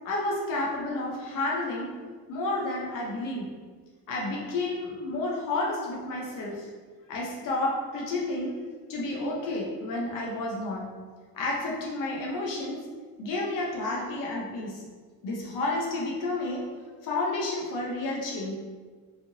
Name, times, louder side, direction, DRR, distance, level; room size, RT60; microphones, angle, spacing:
voice 1, 0.0-1.9 2.3-3.5 4.1-6.7 7.1-8.6 8.9-10.9 11.3-12.8 13.2-14.8 15.2-16.7 17.0-18.5, left 2 dB, 60° left, -3 dB, 0.9 m, -31 dB
4.8 x 3.6 x 2.7 m, 1.5 s
cardioid pair, 170°, 36 cm